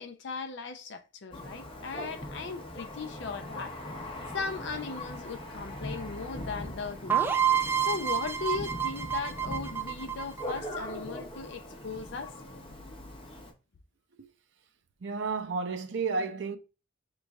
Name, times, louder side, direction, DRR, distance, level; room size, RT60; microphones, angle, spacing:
voice 1, 0.0-3.7 4.3-7.3 7.9-12.3, left 4 dB, 65° left, 0.5 m, -38 dB
Thunder, 1.3-13.5, left 1 dB, 30° left, 0.7 m, -41 dB
sound 1, 7.1-10.8, right 8 dB, 10° right, 0.3 m, -28 dB
voice 2, 15.0-16.6, right 4 dB, 65° right, 0.5 m, -32 dB
5.2 x 3.1 x 2.3 m
head